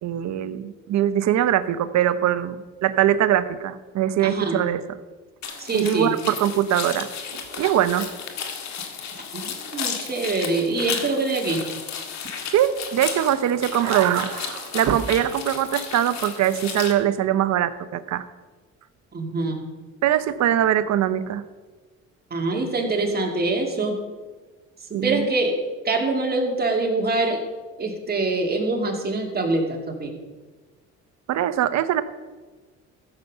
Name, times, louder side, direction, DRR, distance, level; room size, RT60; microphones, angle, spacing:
voice 1, 0.0-4.8 5.5-8.1 12.5-18.2 20.0-21.4 24.9-25.3 31.3-32.0, right 11 dB, 60° right, 13 dB, 0.8 m, -22 dB
voice 2, 4.2-4.6 5.6-6.2 9.3-9.5 9.7-11.7 19.1-19.7 22.3-24.0 25.0-25.5 25.8-27.4 27.8-30.2, right 2 dB, 30° right, 2 dB, 2.5 m, -24 dB
sound 1, 5.4-16.9, left 7 dB, 60° left, 1.8 m, -33 dB
14.0 x 6.9 x 5.5 m, 1.3 s
supercardioid pair, 85°, 32 cm